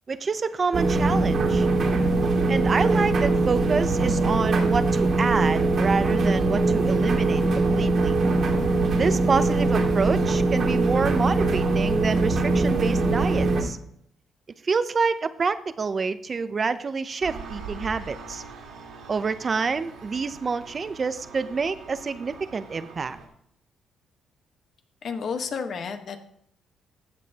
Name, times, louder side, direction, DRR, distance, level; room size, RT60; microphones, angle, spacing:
voice 1, 0.1-1.7 2.5-8.1 9.0-13.8 14.6-18.4 19.1-23.2, right 5 dB, 40° right, 13 dB, 0.7 m, -27 dB
sound 1, 0.7-13.6, right 2 dB, 60° right, 2.0 m, -22 dB
Engine, 17.2-23.3, right 5 dB, 80° right, 2.5 m, -42 dB
voice 2, 25.0-26.3, left 5 dB, 55° left, 7 dB, 1.3 m, -31 dB
14.5 x 8.0 x 2.9 m, 0.70 s
cardioid pair, 90°, 0 cm